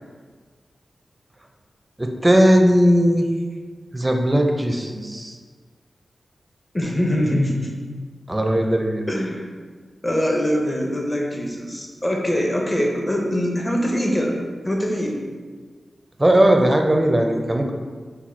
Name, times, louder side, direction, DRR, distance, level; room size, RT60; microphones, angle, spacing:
voice 1, 2.0-3.3 3.9-5.4 8.3-9.1 16.2-17.7, equal, 20° right, 3 dB, 0.5 m, -18 dB
voice 2, 6.7-7.8 9.1-9.5 10.0-14.4 14.6-15.2, equal, 20° left, 0 dB, 0.8 m, -23 dB
4.2 x 2.2 x 4.4 m, 1.5 s
cardioid pair, 60°, 0 cm